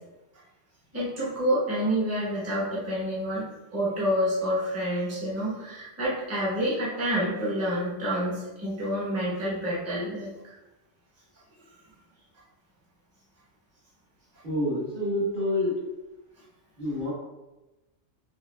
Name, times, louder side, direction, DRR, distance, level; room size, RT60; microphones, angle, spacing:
voice 1, 0.9-3.4 3.7-10.6, equal, 15° right, -7 dB, 0.9 m, -28 dB
voice 2, 14.4-15.7 16.8-17.1, left 1 dB, 45° right, -8 dB, 1.3 m, -27 dB
4.9 x 2.3 x 2.2 m, 1.0 s
omnidirectional pair, 1.2 m